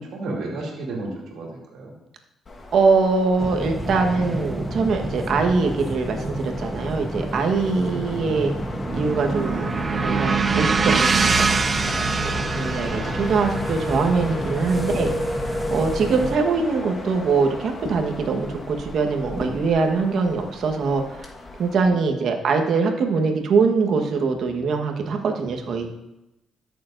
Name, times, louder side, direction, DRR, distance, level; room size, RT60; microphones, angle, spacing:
voice 1, 0.0-1.9 7.9-8.2 12.9-13.5 21.8-22.0, right 2 dB, 80° right, -2 dB, 2.6 m, -34 dB
sound 1, 2.5-21.9, left 2 dB, 40° left, 1.4 m, -36 dB
voice 2, 2.7-8.5 8.9-9.7 10.0-11.5 11.7-12.0 12.5-15.1 15.5-21.2 21.6-25.9, right 4 dB, 65° right, 3 dB, 1.3 m, -23 dB
sound 2, 3.4-16.4, equal, 5° right, 0.8 m, -30 dB
sound 3, 8.5-16.5, right 5 dB, 35° right, 0.6 m, -25 dB
13.5 x 6.8 x 2.6 m, 0.92 s
cardioid pair, 90°, 0 cm